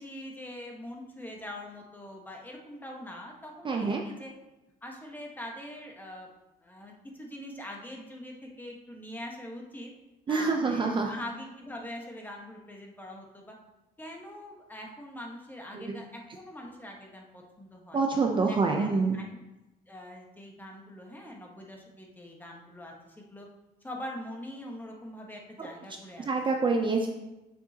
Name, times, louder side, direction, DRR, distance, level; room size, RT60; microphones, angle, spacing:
voice 1, 0.0-4.3 4.8-6.3 6.6-6.9 7.2-9.9 10.3-13.6 14.0-18.0 18.4-18.9 19.1-19.3 19.9-23.5 23.8-26.3, left 1 dB, 10° left, 0 dB, 1.5 m, -43 dB
voice 2, 3.6-4.0 10.3-11.1 15.7-15.9 17.9-19.2 25.6-25.7 26.3-27.1, right 4 dB, 30° right, 2 dB, 0.7 m, -26 dB
7.5 x 6.7 x 2.9 m, 0.99 s
cardioid pair, 110°, 17 cm